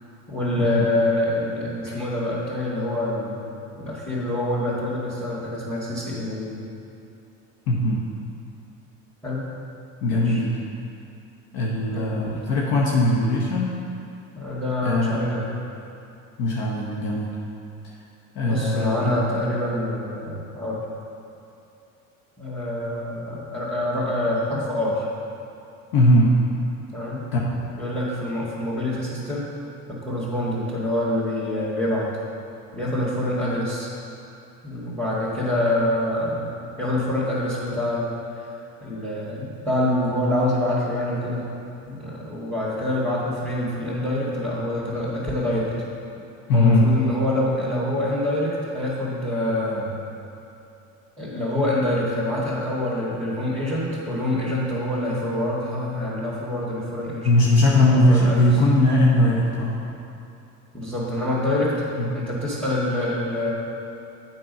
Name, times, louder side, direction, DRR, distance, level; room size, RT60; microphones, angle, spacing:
voice 1, 0.3-3.4 3.8-6.6 9.2-9.5 10.1-10.4 11.9-12.4 14.3-15.5 18.4-20.8 22.4-25.0 26.9-27.2 27.8-29.5 29.9-32.1 32.7-33.9 34.6-36.5 36.8-38.2 38.8-41.5 41.9-45.7 46.5-49.9 51.2-57.3 58.1-58.4 60.7-61.7 62.1-63.5, left 1 dB, 5° left, -9 dB, 2.0 m, -26 dB
voice 2, 7.7-8.0 10.0-10.6 11.5-13.7 14.8-15.2 16.4-17.3 17.8-18.0 18.3-19.2 25.9-26.4 27.3-27.6 46.5-46.9 57.2-59.8 62.0-62.1, left 1 dB, 65° left, -3 dB, 1.0 m, -20 dB
7.6 x 5.4 x 5.4 m, 2.7 s
hypercardioid pair, 70°, 39 cm